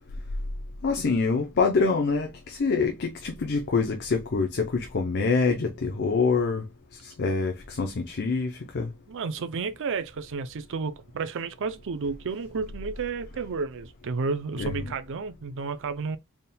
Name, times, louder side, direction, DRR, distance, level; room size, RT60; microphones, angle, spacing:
voice 1, 0.8-8.9 14.6-14.7, left 4 dB, 50° left, 0.6 m, -26 dB
voice 2, 9.1-16.2, right 4 dB, 55° right, 0.5 m, -32 dB
4.2 x 3.5 x 2.2 m
head